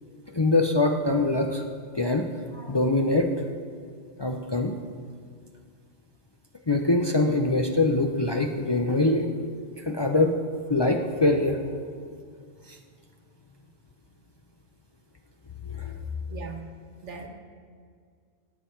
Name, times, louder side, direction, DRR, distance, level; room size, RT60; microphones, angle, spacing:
voice 1, 0.3-1.7 1.9-3.3 4.2-4.7 6.7-9.3 9.8-10.4 10.7-11.6 12.7-12.8 15.6-16.0, left 2 dB, 35° left, 3 dB, 0.5 m, -24 dB
voice 2, 16.3-16.7 17.0-17.3, right 5 dB, 90° right, 4 dB, 1.5 m, -38 dB
18.5 x 6.9 x 4.5 m, 2.1 s
omnidirectional pair, 1.2 m